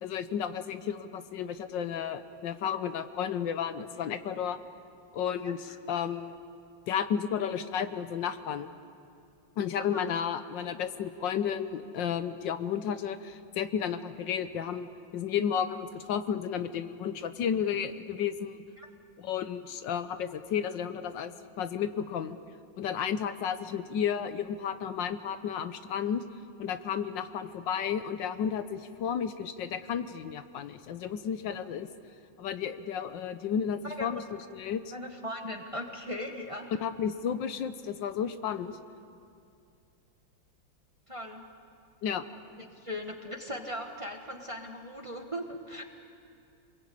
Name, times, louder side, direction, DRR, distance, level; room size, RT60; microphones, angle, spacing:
voice 1, 0.0-4.6 5.1-6.4 6.9-8.7 9.6-18.6 19.2-22.4 22.8-26.2 26.6-31.9 32.4-34.2 34.5-34.8 36.8-38.8 42.0-42.2, left 8 dB, 75° left, 11 dB, 1.5 m, -32 dB
voice 2, 5.4-5.8 9.9-10.1 18.8-18.9 33.8-34.1 34.9-36.7 41.1-41.4 42.6-45.8, equal, 20° right, 3 dB, 1.3 m, -39 dB
27.5 x 21.5 x 8.5 m, 2.4 s
omnidirectional pair, 2.1 m